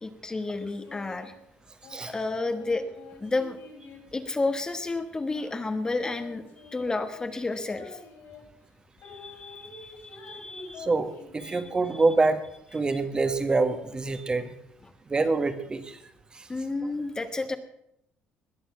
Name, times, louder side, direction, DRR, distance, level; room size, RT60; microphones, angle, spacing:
voice 1, 0.0-1.3 2.1-2.8 3.2-3.6 4.1-8.0 9.0-10.9 11.4-11.6 16.5-17.6, left 3 dB, 20° left, 8 dB, 1.2 m, -31 dB
sound 1, 0.7-1.3 1.8-4.7 5.4-8.4 9.0-11.7, left 4 dB, 70° left, 5.8 m, -48 dB
voice 2, 10.8-12.4 12.7-14.5 15.1-16.0, right 3 dB, 25° right, 9 dB, 1.5 m, -25 dB
20.5 x 7.1 x 7.2 m, 0.77 s
cardioid pair, 110°, 4 cm